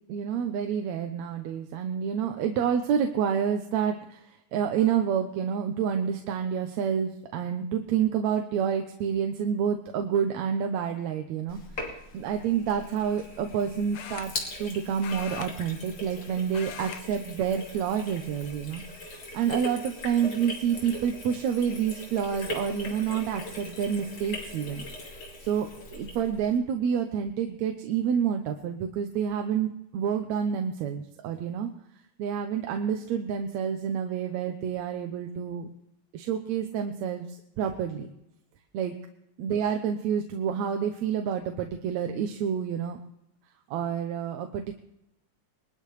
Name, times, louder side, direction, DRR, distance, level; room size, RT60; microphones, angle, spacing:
voice 1, 0.1-25.1 25.4-31.7 32.2-35.7 36.1-38.1 38.7-38.9 39.4-43.0 43.7-44.7, right 8 dB, 75° right, 5 dB, 2.1 m, -28 dB
Sink (filling or washing), 11.5-26.6, left 2 dB, 50° left, 3.5 m, -40 dB
sound 1, 12.0-12.3 13.9-14.7 15.0-16.2 16.5-17.0 17.3-17.6 18.4-18.9 19.5-19.6 21.0-21.1 21.4-21.8, left 9 dB, 75° left, 1.2 m, -42 dB
22.0 x 12.5 x 3.3 m, 0.84 s
omnidirectional pair, 3.3 m